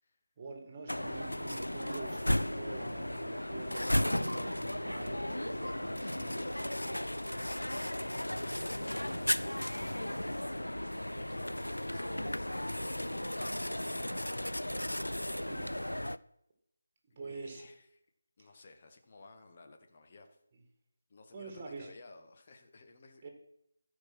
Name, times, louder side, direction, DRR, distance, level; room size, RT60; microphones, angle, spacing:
voice 1, 0.4-6.4 15.3-16.1 17.2-17.6 18.4-18.5 20.5-20.6 21.3-21.9 23.2-23.3, right 3 dB, 25° right, 3 dB, 2.0 m, -46 dB
sound 1, 0.9-16.2, left 1 dB, 85° left, 0.4 m, -35 dB
voice 2, 5.8-10.8 11.1-13.9 17.1-18.0 18.4-20.3 21.1-23.3, left 3 dB, 35° left, 5 dB, 1.3 m, -56 dB
13.5 x 5.0 x 6.1 m, 0.78 s
figure-of-eight pair, 155°, 0 cm